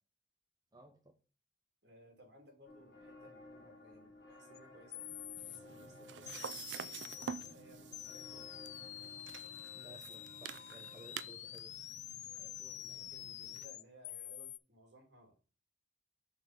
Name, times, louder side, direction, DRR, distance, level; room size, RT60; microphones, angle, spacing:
voice 1, 0.7-1.2 9.7-11.7, right 1 dB, 20° right, 4 dB, 0.7 m, -58 dB
voice 2, 1.8-5.0 5.4-8.6 12.4-15.4, equal, 70° right, 1 dB, 3.0 m, -61 dB
sound 1, 2.6-11.3, left 2 dB, 65° left, 1.7 m, -57 dB
sound 2, 4.5-4.6 4.9-5.6 6.3-7.5 7.9-14.6, left 12 dB, 40° left, 0.3 m, -47 dB
sound 3, 5.4-13.7, right 7 dB, 85° right, 0.5 m, -49 dB
6.6 x 4.1 x 5.1 m, 0.36 s
head